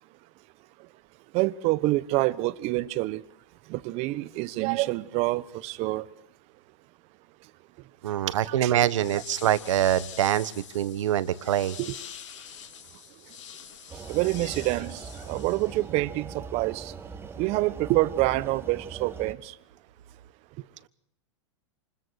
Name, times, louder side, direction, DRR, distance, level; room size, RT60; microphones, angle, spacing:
voice 1, 1.3-3.2 3.7-6.1 8.4-8.7 11.8-11.9 14.1-16.9 17.4-19.5, right 19 dB, 40° right, 1.2 m, -27 dB
voice 2, 8.0-11.8, right 11 dB, 80° right, 1.4 m, -25 dB
sound 1, 8.7-16.0, left 8 dB, 75° left, 3.7 m, -45 dB
sound 2, 13.9-19.3, right 5 dB, 15° right, 1.7 m, -41 dB
28.0 x 21.0 x 6.4 m
hypercardioid pair, 130°, 16 cm